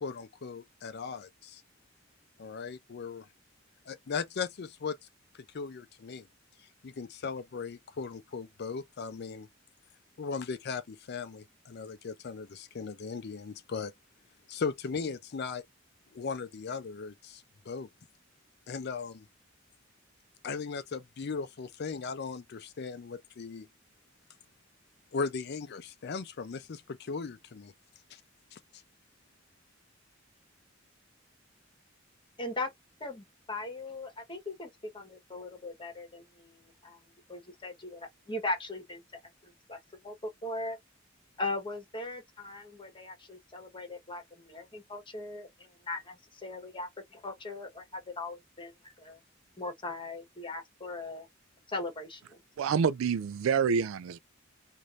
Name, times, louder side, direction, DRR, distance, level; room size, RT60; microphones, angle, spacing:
voice 1, 0.0-1.6 2.4-3.3 3.9-5.0 5.3-6.3 6.8-9.5 10.2-13.9 14.5-15.6 16.1-17.9 18.7-19.2 20.4-23.7 25.1-27.7 28.1-28.2 28.5-28.6, left 5 dB, 55° left, 0.5 m, -37 dB
voice 2, 32.4-32.7 33.0-37.0 37.3-39.0 39.4-40.8 41.4-49.2 49.6-51.3 51.7-52.4, left 2 dB, 25° left, 1.3 m, -39 dB
voice 3, 52.6-54.2, right 6 dB, 90° right, 0.3 m, -27 dB
3.1 x 2.6 x 2.5 m
head